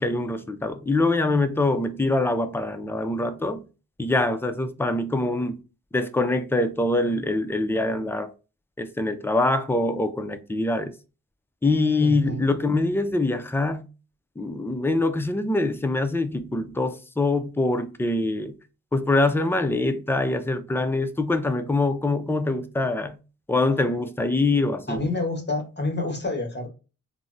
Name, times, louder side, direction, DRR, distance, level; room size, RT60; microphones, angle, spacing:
voice 1, 0.0-3.6 4.0-5.6 5.9-8.3 8.8-10.9 11.6-13.8 14.4-18.5 18.9-23.2 23.5-25.0, left 2 dB, 5° left, 0.4 m, -24 dB
voice 2, 12.0-12.4 24.9-26.7, left 2 dB, 30° left, 1.1 m, -28 dB
3.5 x 2.0 x 2.5 m
cardioid pair, 65°, 34 cm